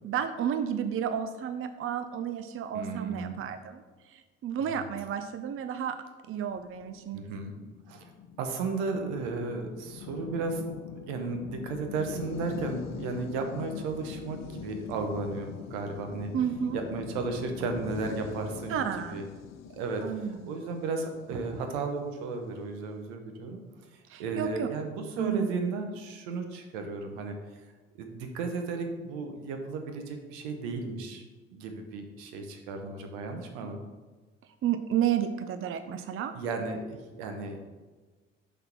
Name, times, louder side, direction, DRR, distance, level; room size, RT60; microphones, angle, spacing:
voice 1, 0.0-6.0 6.3-7.2 16.3-16.8 18.7-19.2 20.0-20.4 24.1-24.7 25.2-25.5 34.6-36.3, right 9 dB, 40° right, 9 dB, 0.5 m, -31 dB
voice 2, 2.7-3.4 7.1-7.5 7.9-8.1 8.4-10.6 11.1-16.3 16.7-18.8 19.1-19.3 19.7-20.0 20.3-23.6 24.2-27.4 27.9-31.2 31.5-33.8 36.3-37.6, right 3 dB, 75° right, 4 dB, 1.0 m, -34 dB
sound 1, 6.6-22.0, left 9 dB, 55° left, 0.5 m, -43 dB
5.7 x 3.6 x 5.9 m, 1.3 s
hypercardioid pair, 50°, 34 cm